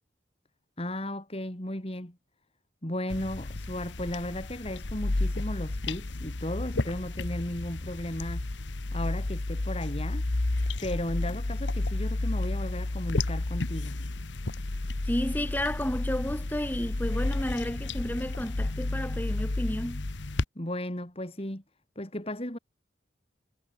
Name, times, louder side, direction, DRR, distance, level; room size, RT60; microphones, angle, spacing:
voice 1, 0.8-2.2 2.8-8.5 8.9-10.2 10.8-14.0 20.5-21.6 21.9-22.6, left 1 dB, 30° left, 3.5 m, -35 dB
sound 1, 3.1-20.4, left 2 dB, 80° left, 1.2 m, -31 dB
voice 2, 15.1-20.0, equal, 10° left, 2.0 m, -32 dB
head